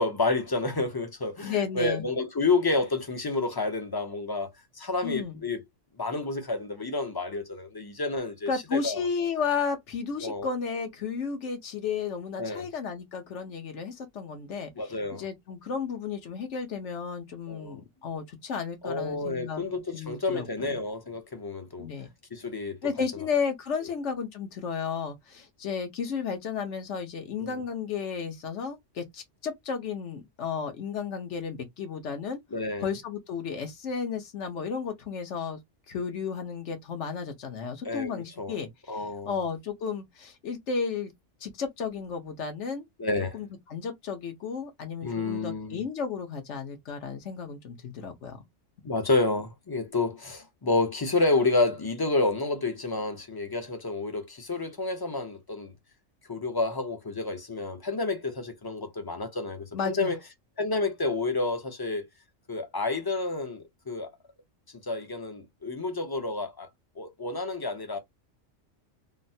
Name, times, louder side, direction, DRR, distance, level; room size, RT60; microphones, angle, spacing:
voice 1, 0.0-5.6 6.0-9.0 10.2-10.5 12.4-12.7 14.8-15.2 17.5-17.8 18.8-21.9 22.3-22.8 23.1-23.3 27.4-27.6 32.5-32.9 37.8-38.6 38.9-39.4 43.0-43.4 45.0-45.8 48.8-55.7 56.3-60.2 60.6-62.1 62.5-64.1 64.8-66.7 67.0-68.0, left 3 dB, 25° left, 0.5 m, -29 dB
voice 2, 1.4-2.0 5.0-5.4 8.5-14.7 15.1-19.6 19.9-20.8 21.8-22.1 22.8-32.4 32.8-35.6 35.9-41.1 41.4-42.9 43.3-48.4 59.7-60.1, left 6 dB, 70° left, 1.3 m, -33 dB
3.7 x 2.1 x 2.7 m
omnidirectional pair, 1.3 m